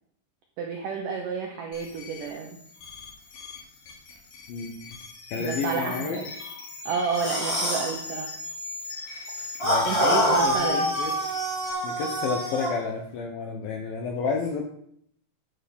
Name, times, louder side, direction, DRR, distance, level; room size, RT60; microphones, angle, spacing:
voice 1, 0.6-2.6 5.4-6.3 6.9-8.3 9.8-10.9, right 5 dB, 80° right, 2 dB, 1.9 m, -30 dB
Ambiance Glitchy Computer Loop Mono, 1.7-11.7, left 3 dB, 55° left, 3.5 m, -40 dB
voice 2, 5.3-6.2 9.6-10.7 11.0-11.1 11.8-14.6, left 5 dB, 75° left, 3 dB, 2.2 m, -31 dB
sound 1, 7.1-7.9 9.6-12.8, equal, 25° left, 0.6 m, -25 dB
12.0 x 6.5 x 5.3 m, 0.68 s
omnidirectional pair, 5.3 m